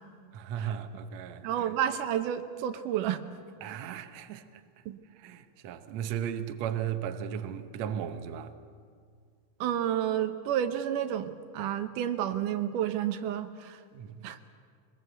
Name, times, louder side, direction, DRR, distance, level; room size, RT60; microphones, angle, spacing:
voice 1, 0.3-1.7 3.6-4.4 5.2-8.5 13.9-14.2, right 9 dB, 65° right, 2.0 m, -36 dB
voice 2, 1.4-3.2 4.9-5.0 9.6-13.8 14.2-14.4, right 10 dB, 90° right, 2.5 m, -30 dB
24.0 x 20.5 x 8.0 m
omnidirectional pair, 3.6 m